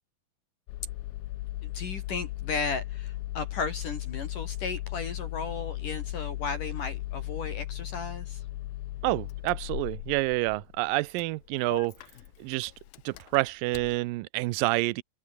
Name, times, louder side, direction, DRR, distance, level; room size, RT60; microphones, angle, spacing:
Engine starting, 0.7-14.0, left 17 dB, 85° left, 2.7 m, -37 dB
voice 1, 1.6-8.4, left 4 dB, 55° left, 5.0 m, -35 dB
voice 2, 9.0-11.9 12.4-12.7 13.1-15.0, right 21 dB, 75° right, 2.3 m, -28 dB
open air
omnidirectional pair, 4.4 m